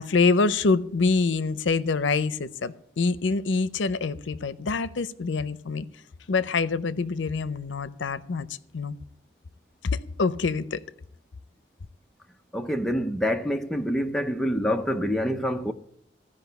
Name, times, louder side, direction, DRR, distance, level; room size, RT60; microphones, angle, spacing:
voice 1, 0.0-5.9 6.3-8.5 8.7-9.0 9.8-10.8, left 4 dB, 80° left, 0.6 m, -25 dB
voice 2, 12.5-15.7, equal, 5° left, 0.5 m, -26 dB
15.0 x 5.3 x 8.0 m
head